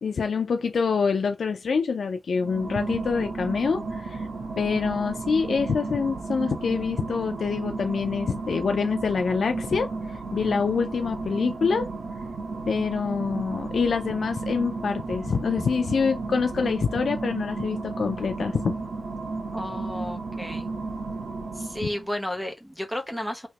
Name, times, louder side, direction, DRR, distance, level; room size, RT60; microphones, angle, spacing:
voice 1, 0.0-4.3 4.6-11.9 12.7-18.7 21.8-21.9, left 5 dB, 75° left, 0.4 m, -26 dB
sound 1, 2.3-22.1, right 3 dB, 85° right, 0.8 m, -33 dB
voice 2, 19.5-20.7 21.6-23.5, left 1 dB, 5° right, 0.9 m, -32 dB
3.2 x 2.9 x 2.8 m
wide cardioid pair, 160°, 0 cm